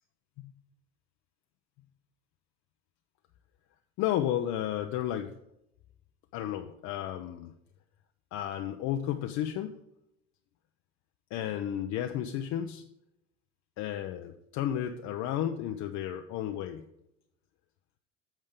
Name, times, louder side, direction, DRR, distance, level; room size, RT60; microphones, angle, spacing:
voice 1, 4.0-5.3 6.3-7.5 8.3-9.8 11.3-12.8 13.8-16.9, left 11 dB, 55° left, 5 dB, 0.6 m, -32 dB
8.9 x 6.4 x 3.5 m, 0.82 s
hypercardioid pair, 80°, 33 cm